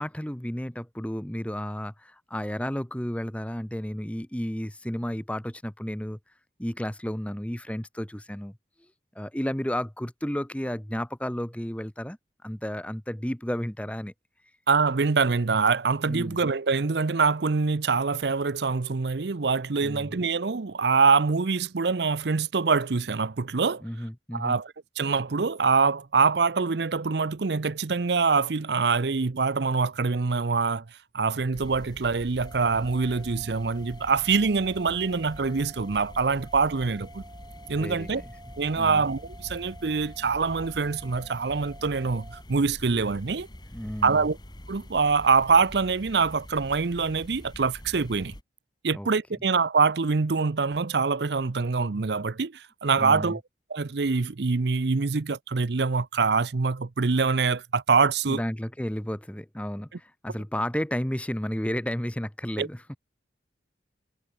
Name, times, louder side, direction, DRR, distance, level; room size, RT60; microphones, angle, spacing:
voice 1, 0.0-6.2 6.6-8.6 9.1-14.1 16.1-16.4 19.8-20.1 23.8-24.6 37.8-38.3 38.7-39.0 43.7-44.2 48.9-49.1 53.0-53.4 58.3-63.0, equal, 5° left, 1.0 m, -32 dB
voice 2, 14.7-23.8 24.3-24.7 25.0-30.8 31.1-37.2 37.7-38.2 38.6-43.5 44.0-44.4 44.7-48.3 48.8-53.4 53.7-58.4 62.6-62.7, right 4 dB, 70° right, 0.7 m, -24 dB
sound 1, 31.5-48.4, equal, 25° left, 2.7 m, -45 dB
sound 2, 32.4-42.4, right 2 dB, 20° right, 1.8 m, -50 dB
head